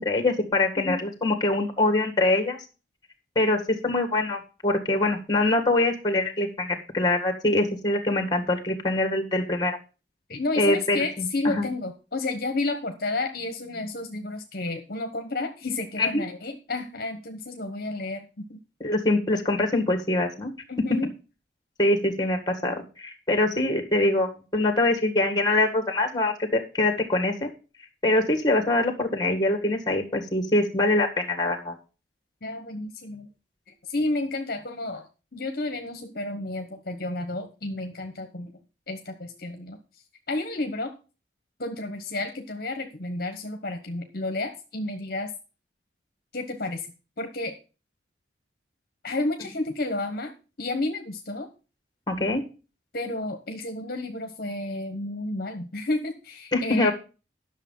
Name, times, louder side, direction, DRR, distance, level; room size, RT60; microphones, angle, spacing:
voice 1, 0.0-2.6 3.4-9.8 10.6-11.7 16.0-16.2 18.8-20.5 21.8-27.5 28.0-31.7 52.1-52.4 56.5-56.9, left 2 dB, 20° left, 5 dB, 1.9 m, -24 dB
voice 2, 10.3-18.6 20.7-21.1 32.4-33.3 33.8-38.5 38.9-39.8 40.3-40.9 41.6-45.3 46.3-46.9 47.2-47.5 49.0-50.3 50.6-51.5 52.9-56.9, left 2 dB, 55° left, 5 dB, 1.1 m, -31 dB
11.0 x 6.6 x 5.5 m, 0.33 s
head